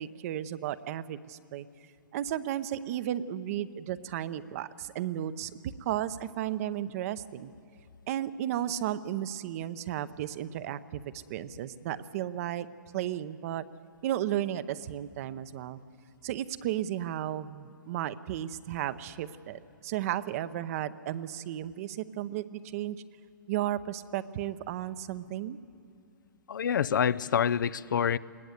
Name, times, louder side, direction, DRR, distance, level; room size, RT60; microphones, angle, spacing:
voice 1, 0.0-1.7 2.1-7.5 8.1-12.7 12.9-13.6 14.0-15.8 16.2-23.0 23.5-25.6, right 12 dB, 45° right, 14 dB, 0.7 m, -34 dB
voice 2, 26.5-28.2, left 8 dB, 70° left, 18 dB, 0.5 m, -27 dB
20.5 x 17.0 x 8.0 m, 2.6 s
hypercardioid pair, 125°, 11 cm